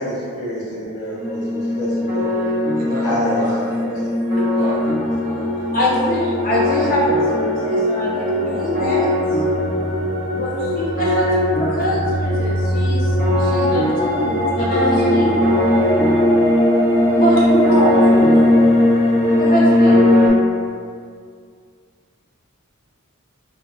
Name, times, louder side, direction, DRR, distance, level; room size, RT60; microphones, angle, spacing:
voice 1, 0.0-2.4 3.0-3.5 3.8-3.9, equal, 75° left, -8 dB, 0.8 m, -27 dB
sound 1, 1.1-20.3, left 1 dB, 60° left, 1.2 m, -18 dB
voice 2, 2.8-5.9 6.5-7.2, right 1 dB, 40° right, -3 dB, 0.4 m, -33 dB
voice 3, 5.7-9.4 10.3-15.4 17.1-18.3 19.4-20.0, equal, 40° left, -5 dB, 0.5 m, -23 dB
2.1 x 2.0 x 3.1 m, 2.1 s
head